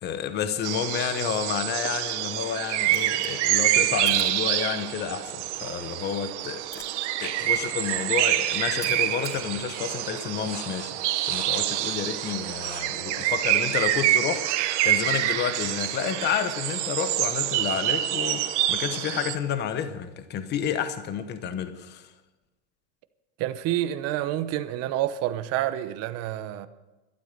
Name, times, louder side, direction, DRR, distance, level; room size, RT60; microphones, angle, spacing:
voice 1, 0.0-6.8 7.2-11.0 11.2-22.1, left 8 dB, 30° left, 1.0 m, -30 dB
sound 1, 0.6-19.4, right 14 dB, 80° right, 1.1 m, -27 dB
sound 2, 2.8-9.4, equal, 10° left, 3.8 m, -48 dB
sound 3, 7.2-12.8, right 6 dB, 25° right, 2.0 m, -43 dB
voice 2, 23.4-26.7, right 13 dB, 45° right, 0.9 m, -28 dB
12.5 x 12.5 x 6.6 m
supercardioid pair, 150°, 35 cm